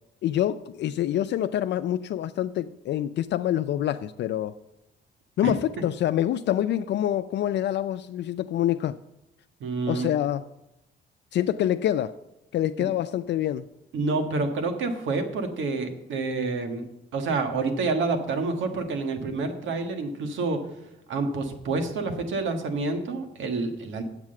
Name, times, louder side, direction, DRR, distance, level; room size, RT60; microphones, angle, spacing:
voice 1, 0.2-4.6 5.4-9.0 9.9-10.4 11.3-12.2 12.5-13.6, left 11 dB, 60° left, 0.4 m, -26 dB
voice 2, 9.6-10.1 12.8-12.9 13.9-16.8 17.1-20.6 21.1-24.0, right 3 dB, 75° right, 1.5 m, -28 dB
8.2 x 6.1 x 7.6 m
cardioid pair, 90°, 20 cm